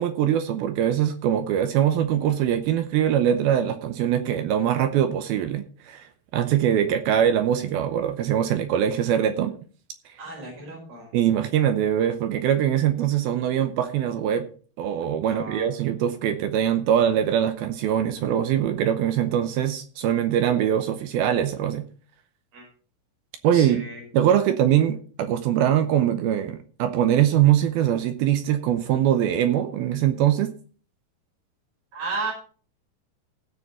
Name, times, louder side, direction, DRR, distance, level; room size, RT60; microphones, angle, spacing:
voice 1, 0.0-6.1 6.3-9.5 11.1-14.5 14.8-21.8 23.4-23.9 24.1-30.5, right 10 dB, 75° right, 2.6 m, -22 dB
voice 2, 10.2-11.1 15.2-15.7 22.5-22.7 23.5-24.1 31.9-32.3, right 3 dB, 60° right, 7.1 m, -33 dB
16.5 x 7.1 x 4.2 m
omnidirectional pair, 4.8 m